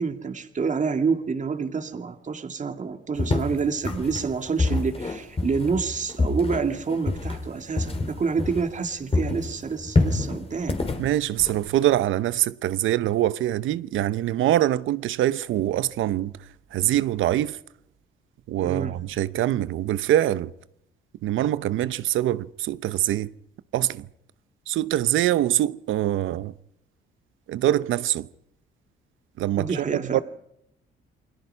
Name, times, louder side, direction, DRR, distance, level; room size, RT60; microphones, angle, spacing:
voice 1, 0.0-10.8 18.6-18.9 29.6-30.2, right 5 dB, 40° right, 2.2 m, -28 dB
sound 1, 3.2-8.9 9.1-12.0, left 3 dB, 30° left, 3.5 m, -27 dB
voice 2, 11.0-16.3 16.7-17.6 18.5-20.5 21.2-23.3 23.7-24.1 24.7-26.5 27.5-28.3 29.4-30.2, right 13 dB, 80° right, 0.8 m, -24 dB
28.5 x 21.5 x 5.7 m
cardioid pair, 90°, 20 cm